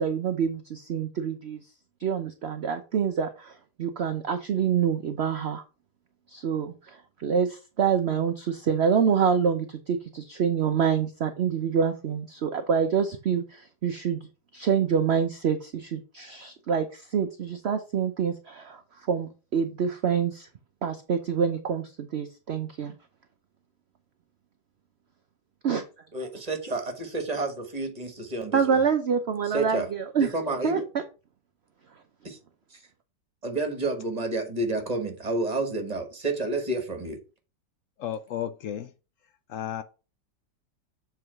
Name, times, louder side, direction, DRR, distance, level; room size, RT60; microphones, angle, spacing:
voice 1, 0.0-1.6 2.0-5.6 6.3-14.2 14.5-18.8 19.1-20.5 20.8-22.9 25.6-25.8 28.5-30.3 30.6-30.8, right 7 dB, 65° right, 0.6 m, -26 dB
voice 2, 26.1-28.8 29.4-29.9 30.2-30.8 32.2-32.4 32.7-32.8 33.4-37.2, right 2 dB, 25° right, 1.4 m, -30 dB
voice 3, 38.0-38.9 39.5-39.8, left 10 dB, 75° left, 0.7 m, -33 dB
7.5 x 3.9 x 4.5 m
omnidirectional pair, 1.9 m